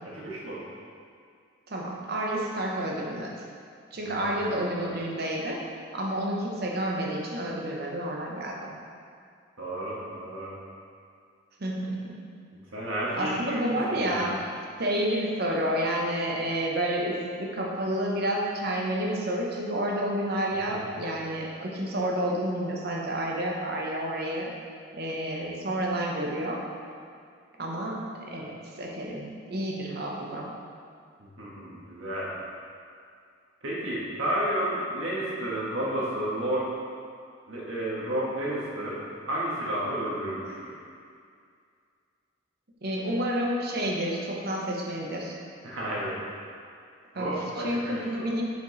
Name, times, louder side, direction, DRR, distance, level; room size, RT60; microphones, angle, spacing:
voice 1, 0.0-0.6 4.0-4.3 9.6-10.5 12.7-13.5 13.9-14.3 20.7-20.8 31.2-32.3 33.6-36.7 37.5-40.5 45.6-46.2 47.1-48.3, right 1 dB, 70° right, -6 dB, 1.5 m, -31 dB
voice 2, 1.7-3.4 3.9-5.6 5.9-8.7 11.6-12.2 13.1-14.5 14.8-24.5 24.9-26.6 27.6-30.5 42.8-45.4 47.1-48.4, right 1 dB, 50° right, -2 dB, 0.8 m, -30 dB
5.0 x 4.9 x 4.0 m, 2.3 s
head